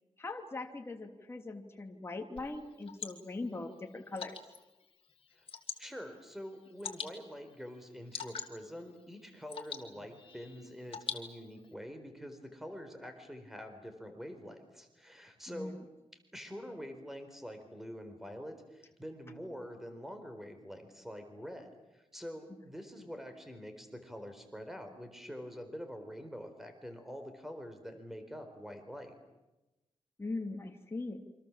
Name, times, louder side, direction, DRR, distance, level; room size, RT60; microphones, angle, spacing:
voice 1, 0.2-4.4 15.5-15.8 30.2-31.2, left 2 dB, 20° left, 2 dB, 2.9 m, -41 dB
Water / Drip, 2.4-11.7, left 6 dB, 55° left, 3.3 m, -46 dB
voice 2, 5.8-15.7 16.3-29.2, equal, 5° right, 7 dB, 4.3 m, -46 dB
28.5 x 26.0 x 7.5 m, 1.0 s
wide cardioid pair, 110°, 11 cm